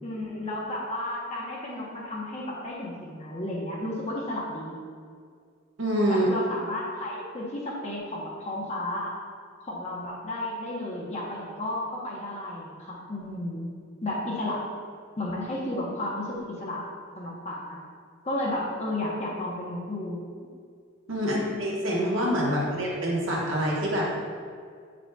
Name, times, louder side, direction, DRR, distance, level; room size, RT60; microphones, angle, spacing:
voice 1, 0.0-4.7 6.0-9.2 9.7-13.7 14.0-14.7 15.2-16.9 17.2-17.8 18.2-20.2 21.2-21.4 22.4-22.8, left 1 dB, 35° left, -4 dB, 0.9 m, -33 dB
voice 2, 5.8-6.3 21.1-24.1, equal, 70° right, -4 dB, 1.2 m, -26 dB
8.2 x 5.0 x 2.3 m, 2.1 s
head